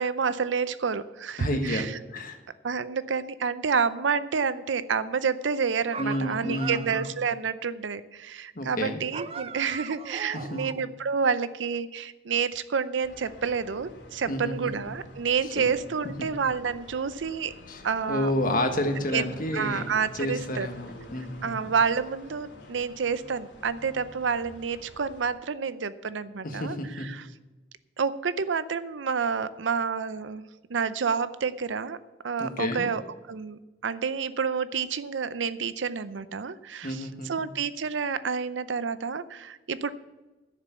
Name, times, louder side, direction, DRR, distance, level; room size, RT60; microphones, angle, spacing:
voice 1, 0.0-2.0 2.6-17.5 17.8-18.3 19.1-19.2 19.5-20.7 21.4-27.2 28.0-30.4 30.7-32.0 32.2-33.0 33.3-39.9, right 6 dB, 85° right, 14 dB, 0.6 m, -29 dB
voice 2, 1.4-1.9 2.1-2.4 6.0-7.0 8.5-9.0 10.3-10.6 14.3-14.7 15.6-15.7 16.2-16.3 17.7-17.8 18.1-21.7 26.4-27.1 32.4-32.9 36.8-37.3, left 1 dB, 50° left, 5 dB, 1.4 m, -30 dB
sound 1, 5.9-7.2 9.1-10.9, right 5 dB, 35° right, 0.5 m, -39 dB
sound 2, 13.0-25.3, left 1 dB, 75° left, 2.8 m, -49 dB
11.0 x 6.8 x 8.2 m, 1.2 s
head